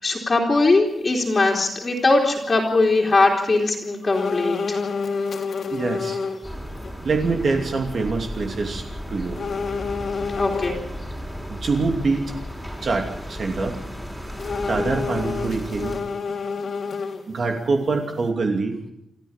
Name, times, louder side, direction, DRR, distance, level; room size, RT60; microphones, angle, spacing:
voice 1, 0.0-4.8 10.4-10.8, left 3 dB, 30° left, -4 dB, 3.4 m, -20 dB
sound 1, 4.1-6.4 6.8-6.9 9.3-10.8 14.4-17.4 17.8-17.9, left 5 dB, 55° left, 3.3 m, -28 dB
voice 2, 5.7-6.2 7.0-9.4 11.5-12.3 12.8-13.8 14.7-16.0 17.3-18.7, right 3 dB, 45° right, 3 dB, 2.7 m, -24 dB
sound 2, 6.4-16.0, equal, ahead, 4.2 m, -34 dB
28.0 x 14.0 x 7.3 m, 0.82 s
wide cardioid pair, 175°, 0 cm